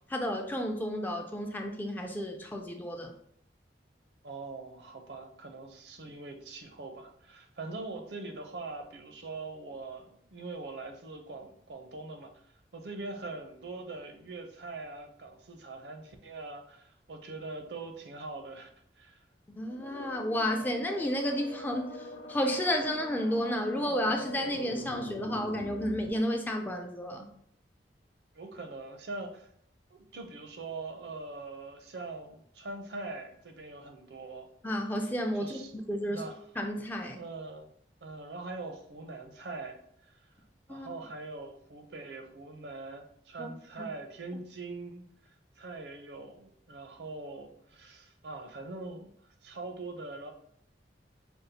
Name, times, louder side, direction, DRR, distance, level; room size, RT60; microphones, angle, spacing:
voice 1, 0.1-3.1 19.5-27.3 34.6-35.6 35.9-36.2 36.6-37.2 40.7-40.9 43.4-43.5, equal, 10° left, 3 dB, 0.3 m, -32 dB
voice 2, 4.2-12.3 12.7-18.7 19.0-19.2 28.3-29.5 29.9-34.5 35.3-35.7 36.0-36.4 37.1-37.7 38.0-40.3 40.7-50.3, right 3 dB, 75° right, 5 dB, 0.6 m, -42 dB
sound 1, 19.6-26.1, left 2 dB, 80° left, 0.5 m, -44 dB
5.3 x 2.3 x 2.7 m, 0.68 s
head